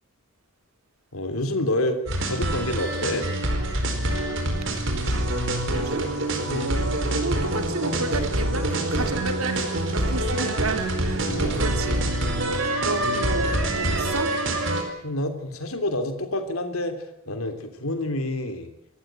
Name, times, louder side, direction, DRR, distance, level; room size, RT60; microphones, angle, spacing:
voice 1, 1.1-3.3 6.5-6.8 11.1-11.7 12.2-12.3 15.0-18.7, left 1 dB, 80° left, 7 dB, 3.3 m, -28 dB
sound 1, 2.1-14.8, right 1 dB, 60° right, 4.6 m, -25 dB
voice 2, 5.7-6.1 6.5-14.3, right 2 dB, 80° right, 8 dB, 2.5 m, -32 dB
27.5 x 14.5 x 9.0 m, 0.84 s
head